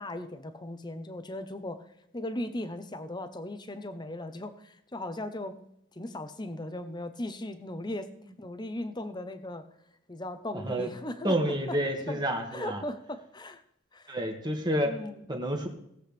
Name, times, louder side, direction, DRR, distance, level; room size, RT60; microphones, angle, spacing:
voice 1, 0.0-1.9 2.1-5.7 5.9-8.1 8.4-9.7 10.1-11.8 12.1-12.2 12.5-13.6 13.9-14.2 14.8-15.2, left 1 dB, 20° left, 10 dB, 0.8 m, -38 dB
voice 2, 10.5-10.9 11.2-12.8 14.1-14.9 15.3-15.7, right 1 dB, 20° right, 3 dB, 1.7 m, -29 dB
19.5 x 7.9 x 3.4 m, 0.80 s
head